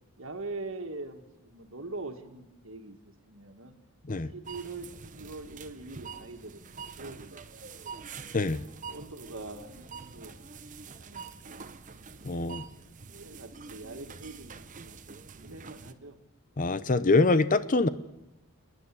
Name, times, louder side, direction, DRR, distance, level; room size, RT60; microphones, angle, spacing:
voice 1, 0.2-3.8 4.2-7.5 7.9-8.1 8.8-11.7 12.1-12.6 13.2-15.0 15.4-16.2, right 3 dB, 60° right, 6 dB, 2.0 m, -43 dB
sound 1, 4.4-15.9, right 5 dB, 35° right, 0.9 m, -46 dB
voice 2, 12.2-12.6 16.6-17.9, left 3 dB, 35° left, 14 dB, 0.7 m, -24 dB
29.5 x 9.9 x 10.0 m, 0.99 s
head